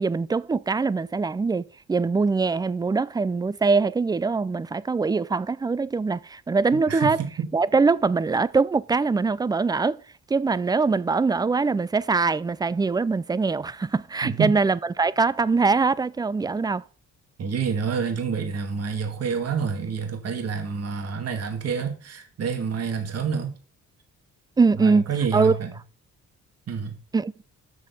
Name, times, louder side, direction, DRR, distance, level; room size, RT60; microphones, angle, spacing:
voice 1, 0.0-7.2 7.5-10.0 10.3-16.8 24.6-25.1 25.3-25.5 27.1-27.3, right 4 dB, 15° right, 0.4 m, -23 dB
voice 2, 6.7-7.5 14.2-14.6 17.4-23.5 24.8-25.7 26.7-27.0, right 6 dB, 55° right, 2.0 m, -28 dB
6.9 x 6.3 x 5.4 m
cardioid pair, 90°, 30 cm